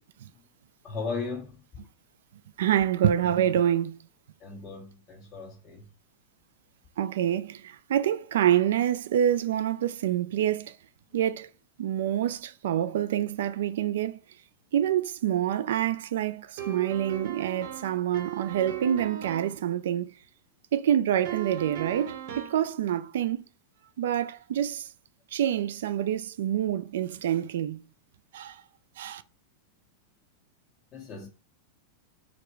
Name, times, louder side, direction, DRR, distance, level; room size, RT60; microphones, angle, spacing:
voice 1, 0.8-1.9 4.4-5.9 30.9-31.3, left 4 dB, 20° left, 1.3 m, -37 dB
voice 2, 2.6-3.9 7.0-10.8 11.1-11.5 11.8-14.2 14.7-20.1 20.7-23.4 24.0-24.9 25.3-27.8 28.3-28.6 29.0-29.2, right 10 dB, 75° right, 0.3 m, -27 dB
sound 1, 16.6-19.6 21.2-22.7, right 10 dB, 50° right, 0.9 m, -37 dB
4.8 x 2.1 x 4.6 m
supercardioid pair, 170°, 0 cm